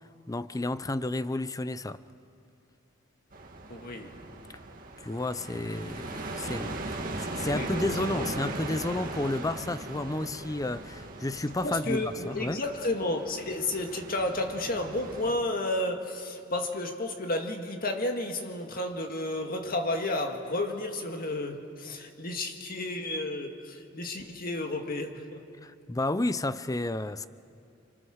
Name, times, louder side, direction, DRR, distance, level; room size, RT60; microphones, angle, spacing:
voice 1, 0.3-2.0 5.0-12.6 25.6-27.3, left 2 dB, 20° left, 0.6 m, -31 dB
sound 1, 3.3-15.3, right 2 dB, 45° right, 1.9 m, -38 dB
voice 2, 3.7-4.1 7.5-7.8 8.2-8.3 11.6-25.4, left 2 dB, 50° left, 1.9 m, -32 dB
29.5 x 25.0 x 6.5 m
head